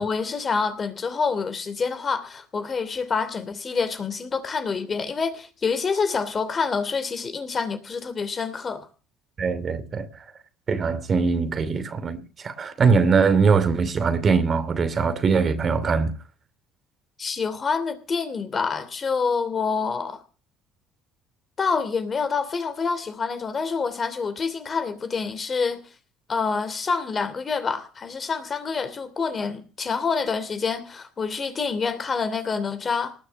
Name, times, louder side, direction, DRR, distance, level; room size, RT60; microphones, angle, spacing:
voice 1, 0.0-8.9 17.2-20.2 21.6-25.8 26.3-33.1, left 5 dB, 35° left, 2.9 m, -27 dB
voice 2, 9.4-10.2 10.7-16.2, right 5 dB, 40° right, 2.7 m, -22 dB
19.0 x 6.5 x 8.9 m
supercardioid pair, 75°, 0 cm